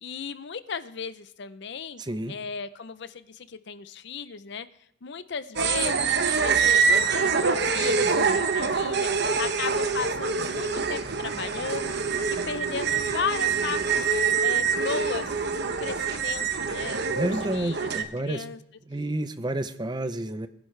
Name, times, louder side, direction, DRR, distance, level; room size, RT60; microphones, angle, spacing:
voice 1, 0.0-2.0 2.3-4.7 5.0-6.1 6.4-9.1 9.4-12.0 12.3-14.1 14.4-15.3 15.6-18.6, left 5 dB, 55° left, 13 dB, 0.6 m, -35 dB
voice 2, 2.0-2.4 17.1-18.4 18.9-20.5, right 1 dB, 20° right, 11 dB, 0.6 m, -30 dB
sound 1, 5.6-18.0, right 5 dB, 55° right, 0.9 m, -25 dB
22.0 x 10.5 x 3.3 m, 0.72 s
head